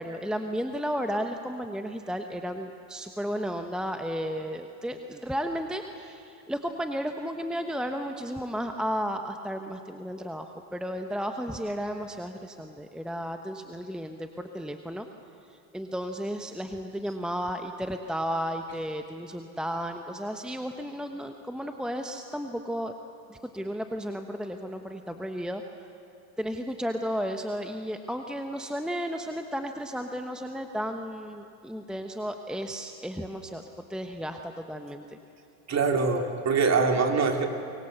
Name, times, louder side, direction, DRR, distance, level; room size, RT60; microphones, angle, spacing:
voice 1, 0.0-15.1 15.7-22.9 23.3-25.6 26.4-35.2, equal, ahead, 5 dB, 1.2 m, -33 dB
voice 2, 35.7-37.5, right 4 dB, 35° right, 4 dB, 3.3 m, -24 dB
24.0 x 23.5 x 8.2 m, 2.8 s
supercardioid pair, 95°, 48 cm